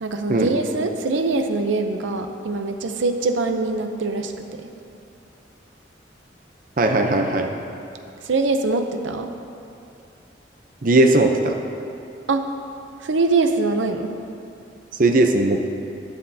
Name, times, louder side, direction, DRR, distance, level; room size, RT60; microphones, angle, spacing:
voice 1, 0.0-4.3 4.6-4.7 8.2-9.3 12.3-12.4 13.0-14.2, right 3 dB, 85° right, 6 dB, 0.6 m, -23 dB
voice 2, 6.8-7.5 10.8-11.5 15.0-15.7, right 2 dB, 45° right, 4 dB, 0.6 m, -18 dB
13.0 x 11.0 x 2.8 m, 2.8 s
head